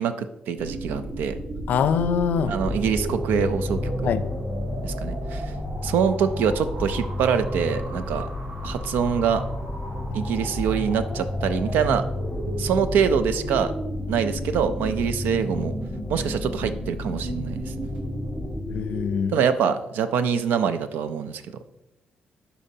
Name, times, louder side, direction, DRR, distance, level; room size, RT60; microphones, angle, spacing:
voice 1, 0.0-1.4 2.5-4.1 4.8-5.5 5.8-8.3 8.6-9.4 10.1-12.0 12.6-13.7 14.1-15.7 16.1-17.7 19.3-21.4, right 7 dB, 90° right, 11 dB, 0.5 m, -24 dB
sound 1, 0.6-19.1, right 1 dB, 70° right, 2.2 m, -34 dB
voice 2, 1.7-2.5 4.0-4.2 18.7-19.4, left 7 dB, 70° left, 12 dB, 0.4 m, -23 dB
sound 2, 2.6-18.6, left 2 dB, 10° left, 0.5 m, -32 dB
11.0 x 4.2 x 2.8 m, 0.89 s
cardioid pair, 115°, 3 cm